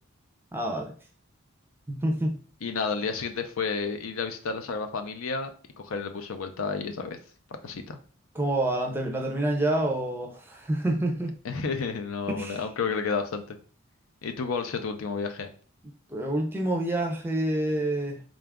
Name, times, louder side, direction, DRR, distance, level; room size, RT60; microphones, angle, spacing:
voice 1, 0.5-0.9 1.9-2.4 8.3-11.3 12.3-12.6 16.1-18.2, right 1 dB, 10° right, 0.5 m, -27 dB
voice 2, 2.6-5.5 5.8-7.2 7.6-8.0 11.4-13.6 14.2-15.5, left 5 dB, 75° left, 0.5 m, -31 dB
3.8 x 2.4 x 3.5 m
head